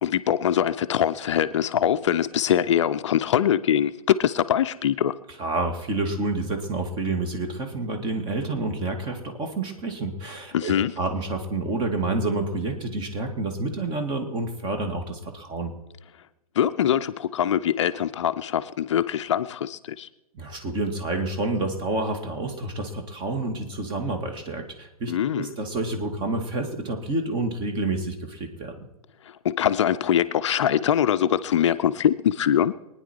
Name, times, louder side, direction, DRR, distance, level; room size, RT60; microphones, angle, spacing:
voice 1, 0.0-5.2 10.5-10.9 16.5-20.1 25.1-25.6 29.2-32.7, left 10 dB, 55° left, 12 dB, 0.6 m, -23 dB
voice 2, 5.4-15.7 20.3-28.7, right 2 dB, 25° right, 5 dB, 2.3 m, -29 dB
23.5 x 9.8 x 4.6 m, 0.97 s
figure-of-eight pair, 115°, 19 cm